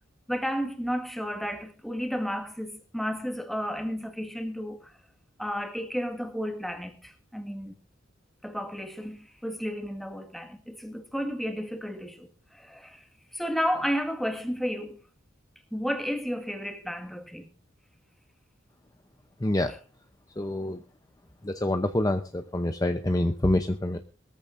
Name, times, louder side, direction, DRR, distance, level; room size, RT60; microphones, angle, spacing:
voice 1, 0.3-4.9 5.4-7.7 8.4-13.0 13.3-15.0 15.7-17.5 19.7-19.8, equal, ahead, 1.8 m, -32 dB
voice 2, 19.4-19.7 20.4-20.8 21.4-24.0, left 1 dB, 20° left, 0.7 m, -26 dB
21.5 x 14.0 x 2.6 m
head